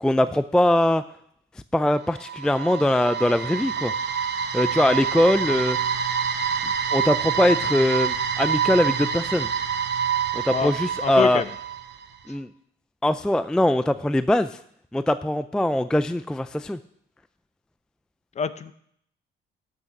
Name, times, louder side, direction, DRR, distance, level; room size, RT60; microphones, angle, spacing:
voice 1, 0.0-1.0 1.7-3.9 4.5-5.8 6.6-9.5 10.3-11.4 12.3-12.5 13.0-14.6 14.9-16.8, left 1 dB, 5° left, 12 dB, 0.3 m, -22 dB
sound 1, 2.0-12.0, right 7 dB, 60° right, 1.0 m, -27 dB
voice 2, 11.0-11.5 18.4-18.7, left 6 dB, 35° left, 14 dB, 0.6 m, -26 dB
12.0 x 6.6 x 6.0 m, 0.69 s
cardioid pair, 115°, 20 cm